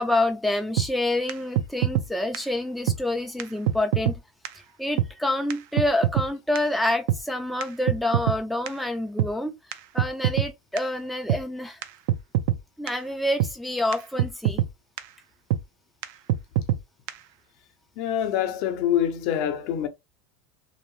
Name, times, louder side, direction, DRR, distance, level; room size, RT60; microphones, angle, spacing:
voice 1, 0.0-4.2 4.5-9.6 9.9-11.8 12.8-14.6, left 1 dB, ahead, 0.3 m, -27 dB
sound 1, 0.8-0.9 1.3-1.4 1.6-2.1 2.3-2.4 2.9-3.0 3.4-3.5 3.7-4.2 4.4-4.5 5.0-5.1 5.5-5.6 5.8-6.3 6.6-6.7 7.1-7.2 7.6-8.4 8.7-8.8 9.2-9.3 9.7-9.8 10.0-10.5 10.8-10.9 11.3-11.4 11.8-11.9 12.1-12.6 12.9-13.0 13.4-13.5 13.9-14.0 14.2-14.7 15.0-15.1 15.5-15.6 16.0-16.1 16.3-16.8 17.1-17.2, right 11 dB, 70° right, 0.4 m, -23 dB
voice 2, 18.0-19.9, left 10 dB, 60° left, 0.6 m, -25 dB
2.7 x 2.0 x 3.0 m
supercardioid pair, 135°, 0 cm